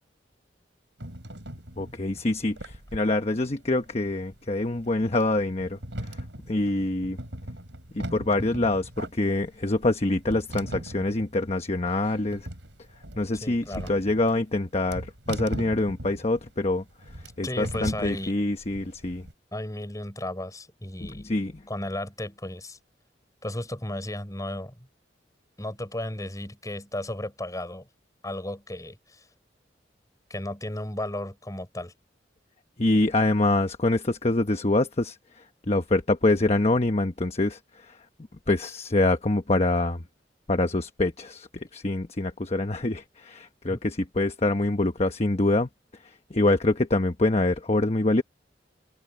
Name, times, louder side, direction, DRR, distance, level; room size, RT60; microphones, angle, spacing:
sound 1, 1.0-19.3, right 1 dB, 90° right, 6.1 m, -39 dB
voice 1, 1.8-5.8 6.5-7.2 7.9-12.5 13.2-16.8 17.4-19.2 21.0-21.5 32.8-35.2 35.7-37.9 38.5-40.0 40.5-45.7 46.3-48.2, left 2 dB, 35° left, 1.0 m, -25 dB
voice 2, 13.4-13.9 17.4-18.4 19.5-21.3 21.7-22.8 23.4-24.9 25.6-27.9 28.2-29.2 30.3-31.9 43.7-43.8, left 1 dB, 20° left, 5.7 m, -34 dB
head